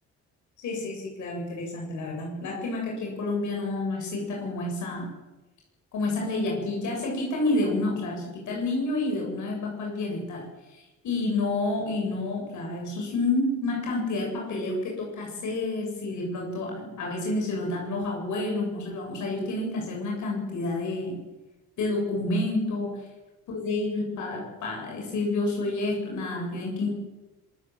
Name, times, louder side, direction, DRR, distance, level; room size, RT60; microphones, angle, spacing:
voice 1, 0.6-5.1 5.9-21.2 21.8-23.0 23.5-26.9, left 2 dB, 75° left, 0 dB, 7.7 m, -29 dB
26.0 x 19.5 x 7.8 m, 1.1 s
cardioid pair, 90°, 30 cm